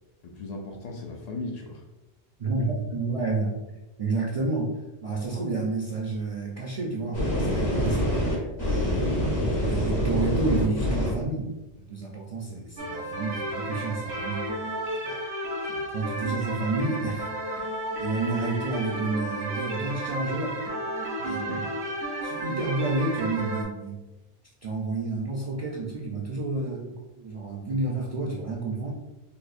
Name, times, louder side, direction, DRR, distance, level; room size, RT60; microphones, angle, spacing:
voice 1, 0.2-1.8 21.2-21.6, left 2 dB, 55° left, 3 dB, 0.4 m, -37 dB
voice 2, 2.4-3.5 4.0-4.7 5.0-9.2 9.5-11.5 11.9-14.8 15.0-15.2 15.6-20.6 21.3-21.7 22.2-24.0 24.6-28.9, right 3 dB, 50° right, -2 dB, 0.4 m, -30 dB
sound 1, 7.1-11.1, equal, 70° left, 1.6 m, -25 dB
sound 2, 12.8-23.6, right 1 dB, 80° right, 1.1 m, -32 dB
5.0 x 2.0 x 2.5 m, 1.0 s
omnidirectional pair, 1.1 m